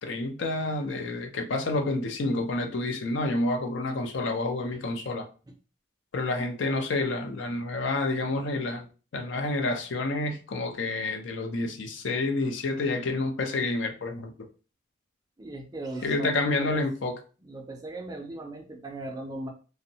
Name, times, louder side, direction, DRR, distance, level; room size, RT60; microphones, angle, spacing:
voice 1, 0.0-5.3 6.1-8.9 9.1-14.3 16.0-17.2, left 2 dB, 85° left, 4 dB, 0.5 m, -29 dB
voice 2, 15.4-17.1 17.4-19.5, right 2 dB, 20° right, 3 dB, 0.4 m, -38 dB
2.6 x 2.0 x 2.7 m, 0.36 s
head